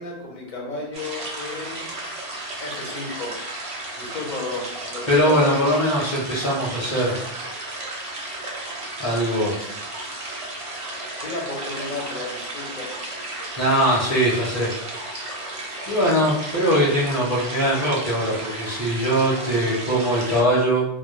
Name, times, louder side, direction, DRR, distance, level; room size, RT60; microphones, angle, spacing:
voice 1, 0.0-1.8 2.6-3.4 4.0-5.7 11.2-13.0, left 2 dB, 55° left, -1 dB, 0.7 m, -33 dB
sound 1, 0.9-20.4, right 2 dB, 45° right, 0.4 m, -34 dB
voice 2, 5.1-7.1 9.0-9.6 13.6-14.7 15.9-20.9, equal, 20° left, -6 dB, 0.7 m, -21 dB
2.2 x 2.0 x 3.1 m, 0.80 s
omnidirectional pair, 1.1 m